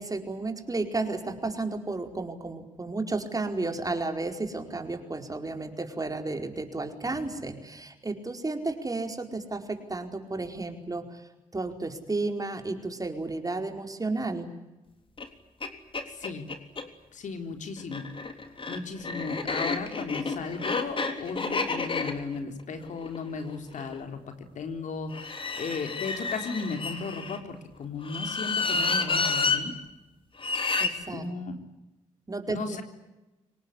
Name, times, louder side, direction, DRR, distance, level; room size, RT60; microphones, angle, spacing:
voice 1, 0.0-11.2 11.5-14.5 30.8-31.2 32.3-32.8, right 3 dB, 25° right, 5 dB, 4.7 m, -32 dB
sound 1, 15.2-15.3 15.6-15.7 15.9-16.9 17.8-23.9 25.1-27.4 28.0-29.6 30.4-30.9, left 4 dB, 40° left, 3.7 m, -30 dB
voice 2, 16.1-16.5 17.1-18.1 18.7-24.2 24.6-29.7 31.1-31.6 32.5-32.8, left 4 dB, 70° left, 6 dB, 3.8 m, -35 dB
25.5 x 19.0 x 10.0 m, 1.0 s
supercardioid pair, 55°, 13 cm